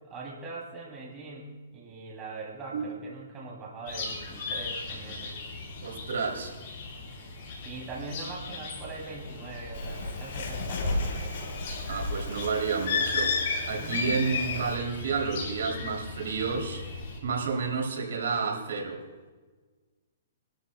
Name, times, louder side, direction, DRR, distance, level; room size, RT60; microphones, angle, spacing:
voice 1, 0.0-5.4 7.6-11.5 13.8-14.1, right 3 dB, 15° right, -4 dB, 3.0 m, -42 dB
sound 1, 3.9-17.2, left 3 dB, 40° left, 5.1 m, -40 dB
voice 2, 5.8-6.5 11.9-13.4 13.7-16.8 17.2-19.0, right 5 dB, 75° right, 1 dB, 3.1 m, -30 dB
Bird, 9.7-14.7, left 4 dB, 60° left, 3.5 m, -31 dB
27.0 x 13.0 x 2.3 m, 1.3 s
hypercardioid pair, 165°, 0 cm